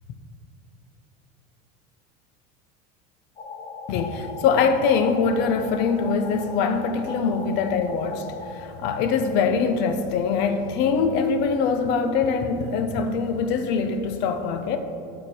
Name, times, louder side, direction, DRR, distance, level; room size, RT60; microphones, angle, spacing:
sound 1, 3.4-8.5, left 4 dB, 30° left, 1.0 m, -38 dB
voice 1, 3.9-14.8, left 5 dB, 60° left, 0.8 m, -23 dB
10.5 x 6.7 x 4.5 m
supercardioid pair, 120°, 20 cm